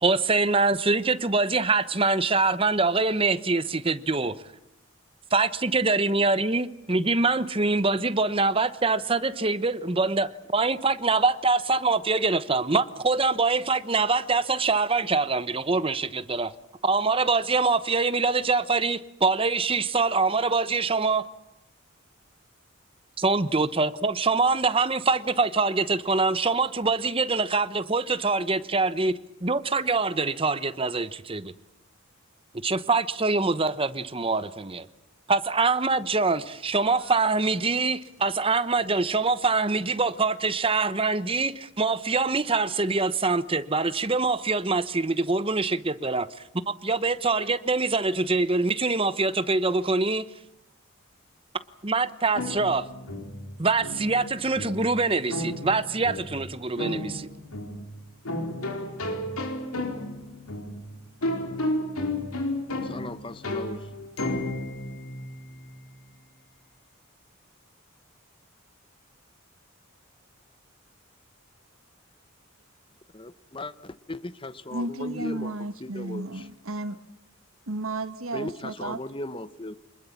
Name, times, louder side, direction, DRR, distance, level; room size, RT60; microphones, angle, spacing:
voice 1, 0.0-4.4 5.3-16.5 16.8-21.2 23.2-31.5 32.6-34.9 35.3-46.3 46.7-50.3 51.8-52.9 53.6-57.3, right 3 dB, 25° right, 1.0 m, -24 dB
sound 1, 36.7-38.2, left 2 dB, 65° left, 6.0 m, -53 dB
sound 2, 52.3-65.9, left 1 dB, 90° left, 4.6 m, -33 dB
voice 2, 62.8-63.9 73.1-76.5 78.3-79.8, left 2 dB, 25° left, 0.9 m, -37 dB
voice 3, 74.7-77.0 77.7-79.0, right 2 dB, 75° right, 1.6 m, -33 dB
26.5 x 21.0 x 7.3 m
head